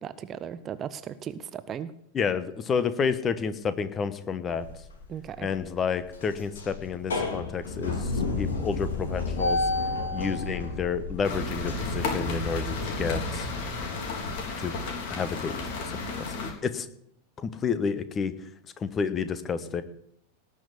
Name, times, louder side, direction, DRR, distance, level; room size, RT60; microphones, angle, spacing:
voice 1, 0.0-1.9 5.1-5.5, right 8 dB, 25° right, 14 dB, 0.7 m, -36 dB
voice 2, 2.1-4.6 5.4-9.6 10.1-13.5 14.6-14.7 15.1-16.9 17.4-18.3 18.8-19.8, left 6 dB, 25° left, 13 dB, 1.1 m, -30 dB
sound 1, 4.5-5.0 5.4-5.6 6.0-14.4, left 3 dB, 65° left, 2.8 m, -32 dB
sound 2, 11.2-16.5, left 3 dB, 50° left, 3.4 m, -33 dB
18.5 x 6.3 x 8.3 m, 0.72 s
figure-of-eight pair, 90°, 0 cm